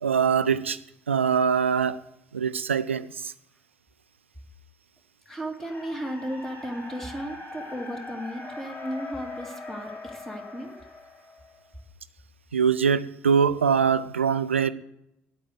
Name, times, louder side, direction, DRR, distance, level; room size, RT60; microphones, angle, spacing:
voice 1, 0.0-0.8 1.1-2.0 2.3-3.3 12.5-14.7, right 6 dB, 85° right, 0.4 m, -23 dB
voice 2, 5.3-10.8, equal, 5° left, 2.2 m, -35 dB
sound 1, 5.6-11.7, left 2 dB, 35° left, 4.0 m, -41 dB
9.1 x 8.5 x 6.7 m
figure-of-eight pair, 55°, 7 cm